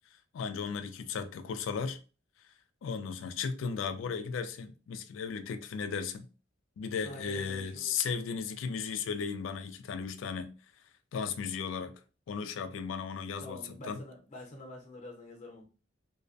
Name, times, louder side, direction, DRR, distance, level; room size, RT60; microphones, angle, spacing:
voice 1, 0.3-2.0 2.8-6.3 6.8-10.5 11.1-11.9 12.3-14.0, left 6 dB, 75° left, 0.3 m, -35 dB
voice 2, 7.0-7.9 13.4-15.6, left 1 dB, 40° left, 0.7 m, -46 dB
2.3 x 2.1 x 2.5 m
head